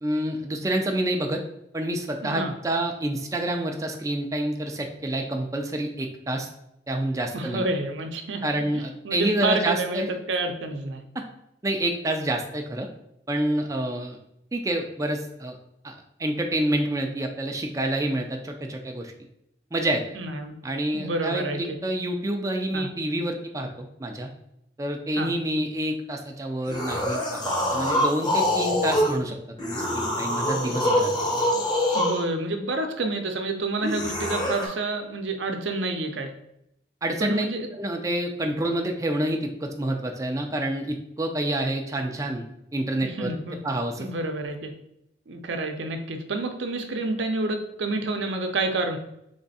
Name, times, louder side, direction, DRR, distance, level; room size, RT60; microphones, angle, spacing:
voice 1, 0.0-1.4 1.7-6.5 6.9-7.7 8.4-10.1 11.1-11.2 11.6-12.9 13.3-14.2 14.5-15.6 15.8-19.1 19.7-20.0 20.6-24.3 24.8-29.4 29.6-31.1 37.0-37.5 37.7-43.3 43.6-44.1, right 1 dB, 20° right, 3 dB, 0.4 m, -28 dB
voice 2, 2.2-2.6 7.3-8.4 8.7-10.0 10.3-11.0 20.1-20.5 20.9-21.8 22.7-22.9 25.2-25.3 31.9-36.3 37.2-37.7 43.0-43.6 44.0-44.7 45.3-49.0, right 2 dB, 80° right, 5 dB, 0.6 m, -29 dB
sound 1, 26.7-29.2 29.6-32.2 33.8-34.7, left 1 dB, 25° left, 0.8 m, -25 dB
3.5 x 3.2 x 4.0 m, 0.79 s
head